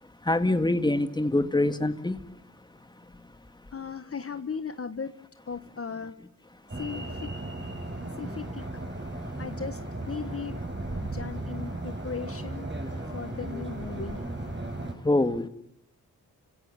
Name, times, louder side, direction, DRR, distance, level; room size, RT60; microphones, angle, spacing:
voice 1, 0.0-2.2 3.0-3.2 7.9-8.1 9.1-9.3 12.9-13.1 14.6-15.5, left 2 dB, 10° left, 1.9 m, -26 dB
voice 2, 3.7-5.1 5.5-6.2 6.7-7.3 8.2-8.6 9.4-10.6 11.0-12.7 13.1-14.2, left 6 dB, 35° left, 1.5 m, -37 dB
sound 1, 6.7-14.9, right 2 dB, 30° right, 7.4 m, -36 dB
29.5 x 17.0 x 9.0 m
cardioid pair, 65°, 37 cm